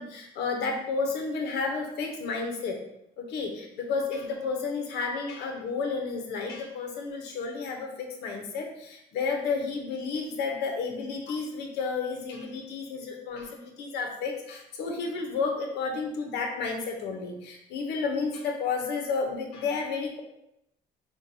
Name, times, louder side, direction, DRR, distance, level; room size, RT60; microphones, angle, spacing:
voice 1, 0.0-2.8 3.2-20.2, left 4 dB, 80° left, 2 dB, 0.9 m, -31 dB
5.8 x 2.3 x 2.7 m, 0.82 s
cardioid pair, 110°, 17 cm